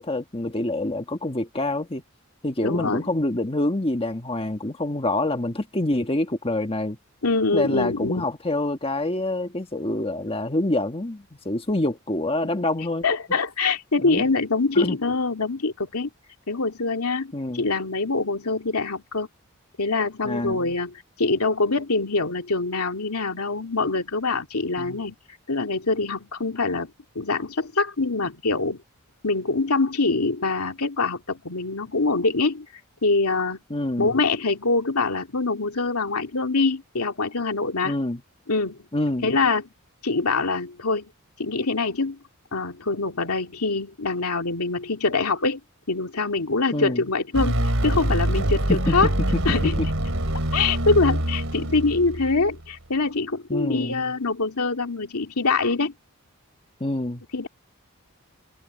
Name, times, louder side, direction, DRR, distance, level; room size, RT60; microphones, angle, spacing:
voice 1, 0.0-2.0 2.4-7.0 7.5-13.0 14.0-14.2 14.7-15.0 17.3-17.7 20.2-20.7 24.8-25.0 33.7-34.1 37.8-38.2 38.9-39.3 46.7-47.0 48.7-49.0 49.3-49.4 49.8-49.9 53.5-54.1 56.8-57.2, left 1 dB, 25° left, 1.5 m, -26 dB
voice 2, 2.6-3.1 7.2-8.3 13.0-16.1 16.5-19.3 19.8-25.2 25.5-28.8 29.2-32.7 33.0-33.6 34.0-38.0 38.5-38.9 39.2-39.6 40.0-41.1 41.4-42.2 42.5-45.6 45.9-49.1 49.4-49.8 50.5-55.9 57.3-57.5, left 3 dB, 90° left, 2.4 m, -24 dB
sound 1, 47.3-52.6, right 1 dB, 65° right, 3.8 m, -25 dB
open air
head